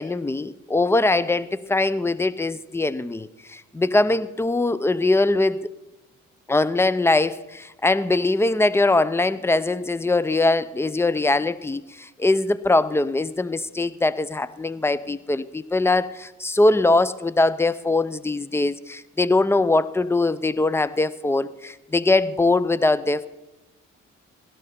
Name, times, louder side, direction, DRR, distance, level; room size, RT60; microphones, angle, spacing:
voice 1, 0.0-5.6 6.5-23.3, left 2 dB, 10° left, 16 dB, 0.6 m, -22 dB
16.5 x 12.5 x 4.3 m, 1.0 s
cardioid pair, 90°, 30 cm